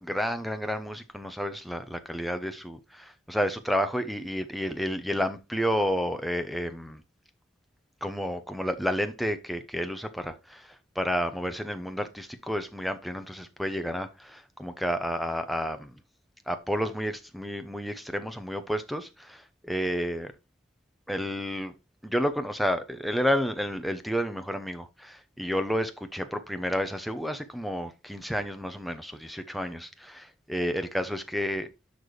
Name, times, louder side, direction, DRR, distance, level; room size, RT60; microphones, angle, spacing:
voice 1, 0.0-7.0 8.0-15.9 16.5-20.3 21.1-21.7 22.0-31.7, equal, ahead, 0.7 m, -31 dB
11.5 x 4.1 x 3.2 m
head